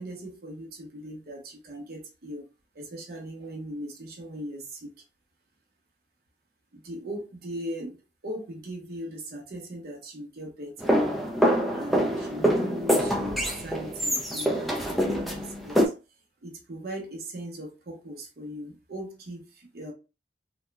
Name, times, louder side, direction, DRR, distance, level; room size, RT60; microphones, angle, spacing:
voice 1, 0.0-2.4 2.7-4.9 6.7-8.0 8.2-11.0 11.7-15.8 16.4-19.9, right 1 dB, 55° right, 0.6 m, -39 dB
sound 1, 10.8-15.9, equal, ahead, 0.4 m, -25 dB
3.0 x 2.1 x 2.3 m
head